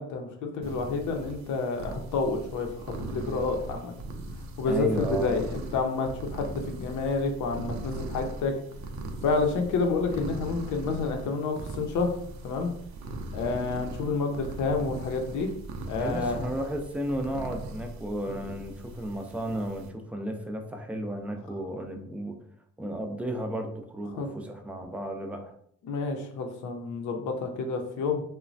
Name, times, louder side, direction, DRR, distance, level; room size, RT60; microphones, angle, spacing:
voice 1, 0.0-3.9 4.6-8.5 9.2-12.2 12.4-12.7 13.3-15.5 15.9-16.5 24.2-24.3 25.8-28.2, left 4 dB, 75° left, 3 dB, 0.6 m, -29 dB
sound 1, 0.6-19.9, right 1 dB, 65° right, 0.5 m, -39 dB
voice 2, 4.7-5.4 16.0-22.4 22.8-25.5, right 1 dB, 5° right, 4 dB, 0.4 m, -33 dB
3.0 x 2.1 x 2.5 m, 0.65 s
cardioid pair, 90°, 30 cm